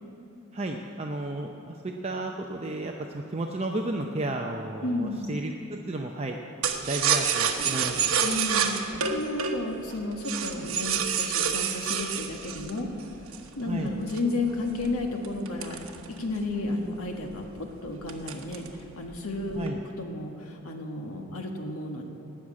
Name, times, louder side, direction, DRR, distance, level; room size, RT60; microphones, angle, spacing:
voice 1, 0.5-6.4 6.8-8.0 13.7-13.9 19.5-19.8, right 2 dB, 30° right, 2 dB, 0.6 m, -33 dB
voice 2, 4.8-5.2 8.2-8.7 9.1-12.9 13.6-15.8 16.2-17.4 17.8-18.6 19.0-19.7 20.0-22.0, left 2 dB, 85° left, 2 dB, 1.7 m, -32 dB
sound 1, 6.6-13.5 14.1-16.5 16.9-17.0 17.3-17.6 18.1-18.8 19.1-19.7, right 7 dB, 75° right, 1.1 m, -28 dB
19.0 x 6.4 x 8.6 m, 3.0 s
head